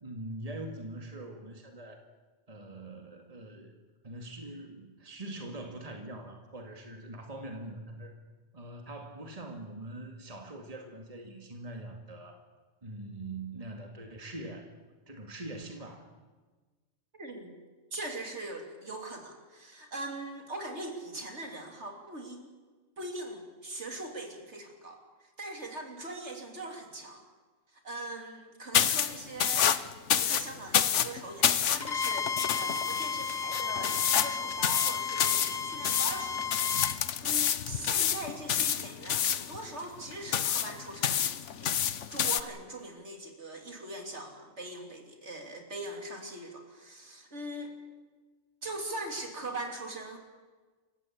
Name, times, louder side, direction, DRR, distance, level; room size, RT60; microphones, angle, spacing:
voice 1, 0.0-2.0 2.5-3.7 4.0-8.1 8.5-12.5 12.8-14.8 15.1-16.1, right 1 dB, 30° right, 3 dB, 2.2 m, -43 dB
voice 2, 17.1-17.5 17.9-22.4 23.0-27.2 27.7-29.7 30.2-41.3 41.6-41.8 42.1-47.7 48.6-50.2, right 2 dB, 65° right, 3 dB, 3.5 m, -41 dB
sound 1, 28.7-42.4, left 9 dB, 75° left, 1.2 m, -29 dB
Bowed string instrument, 31.8-37.0, left 6 dB, 35° left, 1.5 m, -34 dB
28.0 x 15.5 x 8.7 m, 1.3 s
omnidirectional pair, 1.3 m